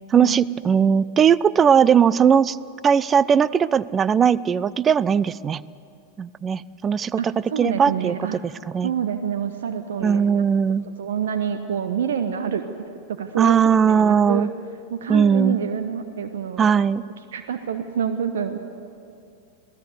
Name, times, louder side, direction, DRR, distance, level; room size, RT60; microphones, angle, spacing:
voice 1, 0.1-2.6 2.8-5.6 6.2-7.2 7.6-8.1 8.7-8.9 10.0-10.9 13.4-14.5 15.1-15.6 16.6-17.0, right 7 dB, 20° right, 20 dB, 0.5 m, -18 dB
voice 2, 7.2-8.4 8.8-10.4 11.0-14.5 14.9-16.7 17.3-18.6, right 7 dB, 60° right, 9 dB, 1.0 m, -27 dB
27.0 x 17.5 x 7.9 m, 2.6 s
figure-of-eight pair, 90°, 0 cm